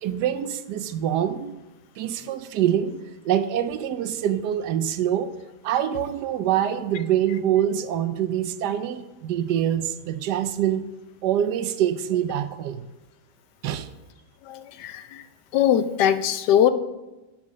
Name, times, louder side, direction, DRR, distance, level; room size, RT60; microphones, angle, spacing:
voice 1, 0.0-1.5 2.0-3.0 3.2-5.3 5.6-10.9 11.2-12.9 13.6-13.9, right 10 dB, 80° right, 10 dB, 1.2 m, -25 dB
voice 2, 14.5-15.2 15.5-16.7, left 10 dB, 90° left, 12 dB, 1.2 m, -21 dB
7.2 x 6.1 x 6.5 m, 1.0 s
omnidirectional pair, 1.7 m